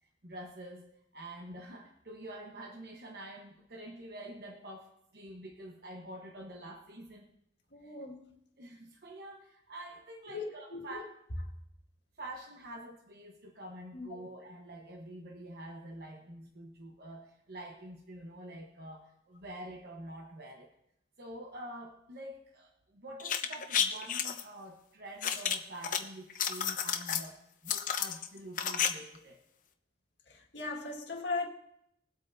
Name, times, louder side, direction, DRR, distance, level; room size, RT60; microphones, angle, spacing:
voice 1, 0.0-7.3 7.8-8.0 8.6-11.1 12.2-20.7 21.2-29.4, right 1 dB, 60° right, 1.1 m, -47 dB
voice 2, 7.7-8.3 10.3-11.0 13.9-14.2 30.3-31.5, left 3 dB, 80° left, 1.8 m, -39 dB
sound 1, 23.2-24.4 25.2-26.0 26.3-27.3 27.7-28.9 29.1-29.2, left 8 dB, 45° left, 0.8 m, -31 dB
21.0 x 8.2 x 2.6 m
head